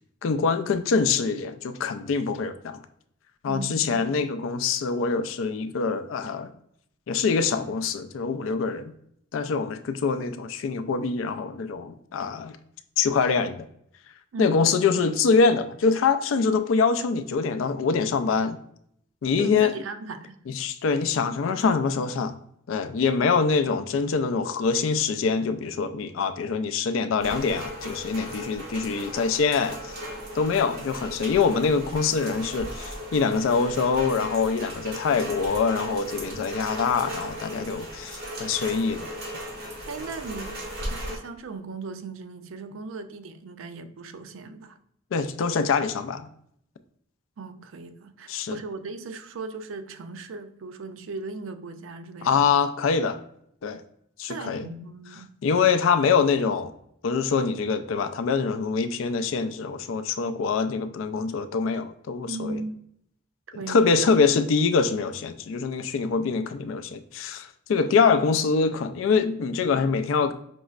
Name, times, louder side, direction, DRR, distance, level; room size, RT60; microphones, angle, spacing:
voice 1, 0.2-2.8 3.4-6.5 7.1-8.9 9.3-12.6 13.0-13.6 14.4-18.6 19.2-19.7 20.5-22.3 22.7-29.9 30.3-39.1 45.1-46.3 48.3-48.6 52.2-53.2 53.6-53.8 54.2-54.7 55.4-56.7 57.0-62.6 63.7-70.3, left 5 dB, 80° left, 10 dB, 0.4 m, -24 dB
voice 2, 3.5-4.1 14.3-15.1 19.4-20.4 39.9-44.8 47.4-52.5 54.3-55.3 62.3-62.8 63.5-64.0, right 3 dB, 90° right, 9 dB, 0.4 m, -37 dB
Rain, 27.2-41.2, right 1 dB, 55° right, 1.4 m, -37 dB
5.3 x 3.0 x 2.4 m, 0.70 s
head